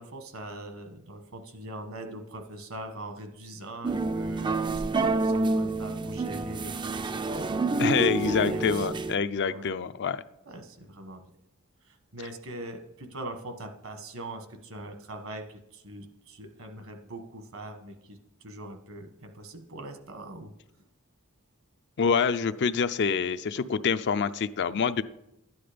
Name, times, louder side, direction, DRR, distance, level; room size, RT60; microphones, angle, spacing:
voice 1, 0.0-7.9 8.2-9.0 9.5-9.7 10.4-11.2 11.8-20.5, right 1 dB, 70° right, 7 dB, 1.4 m, -42 dB
sound 1, 3.8-9.2, right 3 dB, 20° right, 0.4 m, -28 dB
voice 2, 7.8-10.2 22.0-25.0, left 6 dB, 55° left, 12 dB, 0.5 m, -26 dB
12.0 x 9.6 x 5.1 m, 0.86 s
head